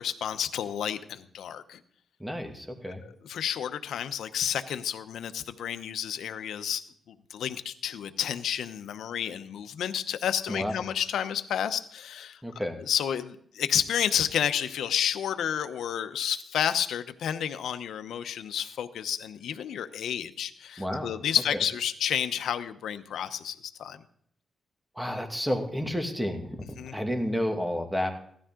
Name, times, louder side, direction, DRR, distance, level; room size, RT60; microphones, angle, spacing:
voice 1, 0.0-1.8 3.2-12.4 12.9-24.0 26.8-26.9, left 9 dB, 85° left, 10 dB, 0.8 m, -30 dB
voice 2, 2.2-3.0 10.5-10.8 12.4-12.8 20.8-21.1 21.5-21.6 24.9-28.1, equal, 5° right, 4 dB, 2.3 m, -31 dB
16.5 x 13.0 x 3.8 m, 0.65 s
cardioid pair, 85°, 0 cm